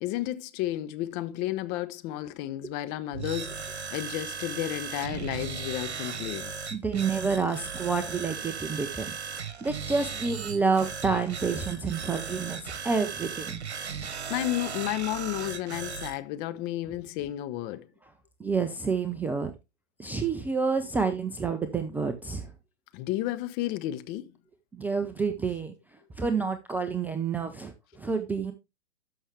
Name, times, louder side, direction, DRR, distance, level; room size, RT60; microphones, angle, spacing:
voice 1, 0.0-6.5 14.3-17.9 22.9-24.4, left 14 dB, 30° left, 0.7 m, -32 dB
sound 1, 3.1-16.2, right 6 dB, 70° right, 1.3 m, -37 dB
voice 2, 6.7-9.1 9.6-13.6 18.4-19.5 20.0-22.5 24.8-25.7 26.2-27.7 28.0-28.5, right 5 dB, 5° right, 0.4 m, -28 dB
12.5 x 5.7 x 3.3 m
figure-of-eight pair, 110°, 33 cm